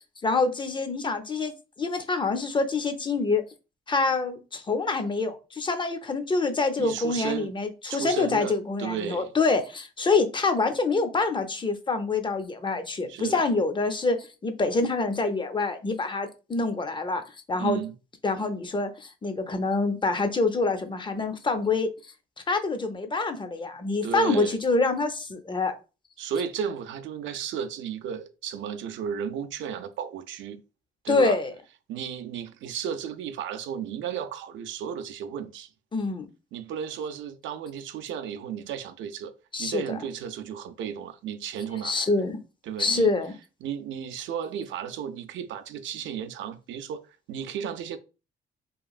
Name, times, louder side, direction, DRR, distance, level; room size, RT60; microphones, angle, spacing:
voice 1, 0.2-3.4 3.9-17.2 17.5-17.8 18.2-21.9 22.5-25.8 31.1-31.5 35.9-36.3 39.5-40.0 41.8-42.4 42.8-43.3, left 3 dB, 25° left, 0.5 m, -26 dB
voice 2, 6.8-7.5 7.9-9.3 13.1-13.5 17.6-17.9 24.0-24.6 26.2-30.6 31.0-31.4 31.9-35.7 36.5-39.3 39.6-42.1 42.7-43.1 43.6-48.0, right 8 dB, 75° right, 0.4 m, -34 dB
2.9 x 2.4 x 2.3 m
cardioid pair, 90°, 20 cm